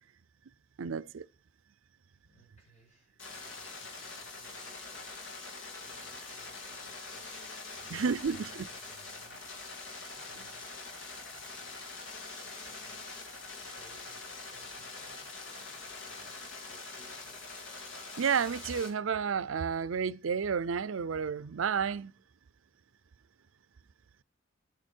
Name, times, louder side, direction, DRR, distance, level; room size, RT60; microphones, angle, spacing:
voice 1, 0.8-1.2 7.9-8.7 18.2-22.1, right 6 dB, 80° right, 0.5 m, -31 dB
voice 2, 2.2-10.7 11.2-11.7 12.3-17.4, right 1 dB, 35° left, 6.4 m, -64 dB
sound 1, 3.2-18.9, left 3 dB, 70° left, 3.0 m, -44 dB
10.0 x 9.2 x 4.5 m
head